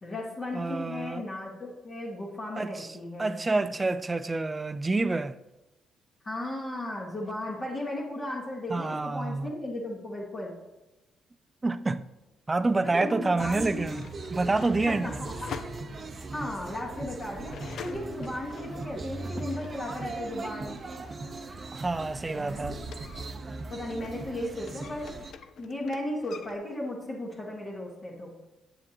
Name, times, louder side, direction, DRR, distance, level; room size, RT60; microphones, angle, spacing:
voice 1, 0.0-3.4 6.2-10.5 12.8-14.0 14.9-15.3 16.3-20.8 22.3-22.8 23.7-25.3 25.6-28.4, left 1 dB, 35° left, 1.7 m, -35 dB
voice 2, 0.5-1.3 2.6-2.9 3.2-5.4 8.7-9.5 11.6-12.1 12.5-15.1 21.7-22.8, right 3 dB, 20° right, 0.4 m, -28 dB
sound 1, 12.2-12.3 13.2-20.2 20.5-24.3 24.6-26.6, left 7 dB, 65° left, 0.4 m, -47 dB
sound 2, 13.4-25.3, right 3 dB, 40° right, 0.8 m, -39 dB
7.8 x 7.4 x 2.9 m
cardioid pair, 90°, 0 cm